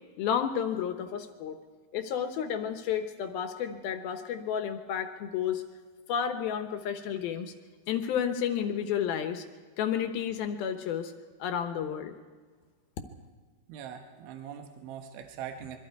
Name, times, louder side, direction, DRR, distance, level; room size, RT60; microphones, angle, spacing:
voice 1, 0.2-1.6 1.9-5.6 6.1-7.5 7.9-9.4 9.8-11.1 11.4-12.2, left 8 dB, 70° left, 7 dB, 2.4 m, -31 dB
voice 2, 13.7-15.8, right 8 dB, 80° right, 4 dB, 3.7 m, -42 dB
26.5 x 23.0 x 4.7 m, 1.5 s
omnidirectional pair, 5.4 m